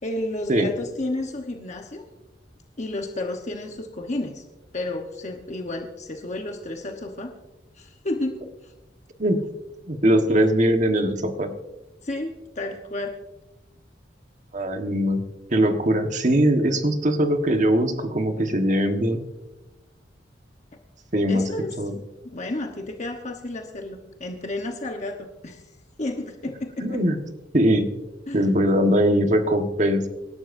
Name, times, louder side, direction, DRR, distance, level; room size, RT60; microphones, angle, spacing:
voice 1, 0.0-2.1 2.8-4.4 4.7-7.3 7.8-8.7 12.0-13.2 21.3-25.6 26.0-27.0 28.3-28.5, left 2 dB, 40° left, 3 dB, 1.1 m, -32 dB
voice 2, 9.9-11.5 14.5-15.2 15.5-19.2 21.1-21.5 21.8-21.9 26.8-27.2 27.5-27.9 28.3-30.0, equal, 40° right, 5 dB, 1.4 m, -21 dB
26.0 x 12.0 x 2.6 m, 1.0 s
head